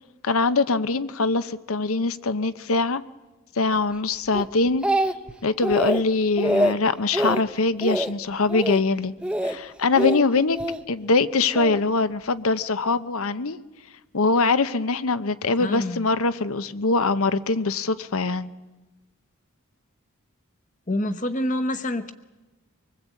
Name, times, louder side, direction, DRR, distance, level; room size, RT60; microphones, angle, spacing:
voice 1, 0.2-3.0 3.6-4.9 5.4-9.1 9.4-10.6 10.9-13.6 14.1-18.5, left 3 dB, 80° left, 14 dB, 0.8 m, -23 dB
Speech, 4.3-5.3 5.6-6.0 6.4-6.7 7.1-7.4 7.8-8.1 8.5-8.8 9.2-9.6 10.0-10.8 11.5-11.8, right 1 dB, 5° right, 0.7 m, -24 dB
voice 2, 15.6-16.1 20.9-22.1, left 1 dB, 35° left, 9 dB, 1.0 m, -27 dB
25.0 x 19.5 x 8.3 m, 1.2 s
head